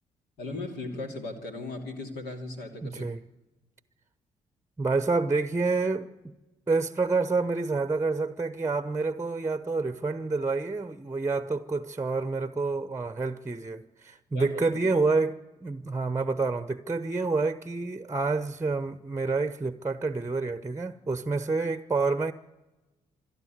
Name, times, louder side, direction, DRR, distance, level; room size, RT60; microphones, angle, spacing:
voice 1, 0.4-3.0 14.3-14.8, left 2 dB, 70° left, 2.9 m, -37 dB
voice 2, 2.8-3.2 4.8-6.1 6.7-22.3, right 3 dB, 15° right, 0.9 m, -28 dB
26.0 x 10.5 x 9.4 m
hypercardioid pair, 40°, 17 cm